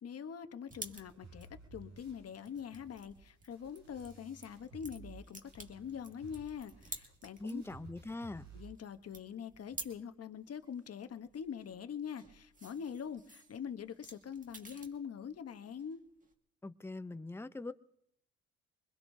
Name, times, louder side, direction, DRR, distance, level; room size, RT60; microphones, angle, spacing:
voice 1, 0.0-7.6 8.5-16.0, left 7 dB, 50° left, 1.1 m, -44 dB
sound 1, 0.7-7.7 8.0-10.0 10.4-15.0 15.3-16.3, right 2 dB, 25° right, 2.0 m, -52 dB
sound 2, 0.7-5.2 5.5-8.7, right 3 dB, 85° right, 6.3 m, -56 dB
voice 2, 7.4-8.5 16.6-17.7, left 2 dB, 10° left, 0.6 m, -42 dB
23.5 x 21.0 x 2.7 m
supercardioid pair, 60°, 32 cm